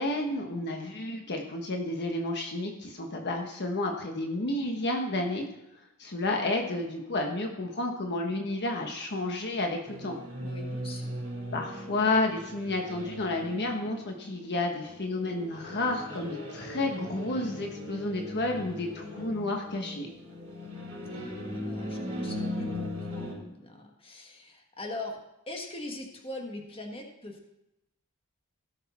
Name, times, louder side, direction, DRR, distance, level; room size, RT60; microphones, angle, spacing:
voice 1, 0.0-5.4 6.0-10.2 11.5-20.1, left 2 dB, 50° left, 2 dB, 1.2 m, -31 dB
sound 1, 9.8-23.3, left 1 dB, 25° right, 4.1 m, -39 dB
voice 2, 10.4-11.2 21.1-25.2 25.5-27.5, left 2 dB, 25° left, 2 dB, 1.5 m, -42 dB
16.5 x 6.7 x 4.3 m, 0.86 s
head